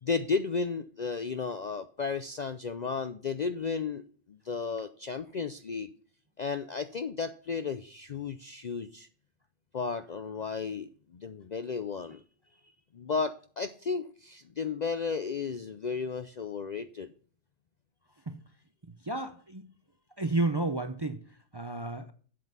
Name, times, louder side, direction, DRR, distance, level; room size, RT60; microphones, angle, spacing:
voice 1, 0.0-4.0 4.3-5.9 6.4-9.1 9.7-12.2 12.9-17.1, left 5 dB, 50° left, 10 dB, 0.5 m, -33 dB
voice 2, 19.0-19.7 20.2-22.1, right 2 dB, 25° right, 10 dB, 0.5 m, -32 dB
7.8 x 7.7 x 5.4 m, 0.43 s
omnidirectional pair, 1.3 m